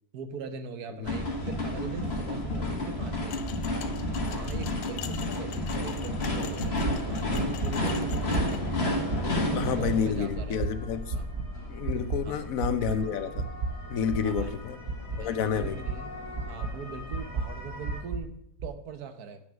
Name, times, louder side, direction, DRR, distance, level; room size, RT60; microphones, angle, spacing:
voice 1, 0.1-3.5 4.2-8.8 9.2-10.7 11.1-11.3 12.2-12.5 14.2-14.6 15.2-16.2 16.5-19.4, right 6 dB, 85° right, 9 dB, 1.5 m, -42 dB
sound 1, 1.0-18.0, left 1 dB, 45° left, 2.0 m, -32 dB
sound 2, 3.3-8.6, left 10 dB, 85° left, 1.2 m, -44 dB
sound 3, 6.6-6.9 7.3-7.7 8.1-8.4 8.8-9.2 9.6-9.9 10.3-10.7 11.1-11.5 11.8-12.2 12.6-12.9 13.3-13.7 14.1-14.4 14.8-15.2 15.6-15.9 16.3-16.7 17.1-17.4 17.8-18.2 18.6-18.7, right 4 dB, 60° right, 1.2 m, -31 dB
voice 2, 9.5-11.0 11.7-13.5 13.9-14.8 15.2-15.8, left 7 dB, 70° left, 11 dB, 1.2 m, -29 dB
8.0 x 6.3 x 7.1 m, 0.78 s
omnidirectional pair, 1.6 m